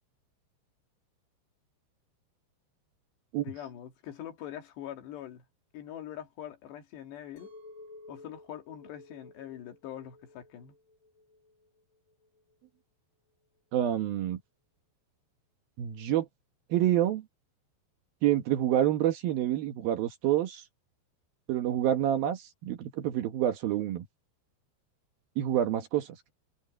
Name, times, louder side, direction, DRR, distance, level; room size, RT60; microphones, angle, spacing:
voice 1, 3.4-5.4 5.7-7.5 8.1-10.7, left 11 dB, 75° left, 4.4 m, -43 dB
Chink clink, 7.4-12.5, left 2 dB, 50° left, 9.2 m, -53 dB
voice 2, 13.7-14.4 15.8-16.3 16.7-17.2 18.2-20.6 21.5-24.1 25.4-26.3, right 12 dB, 65° right, 2.8 m, -27 dB
omnidirectional pair, 5.0 m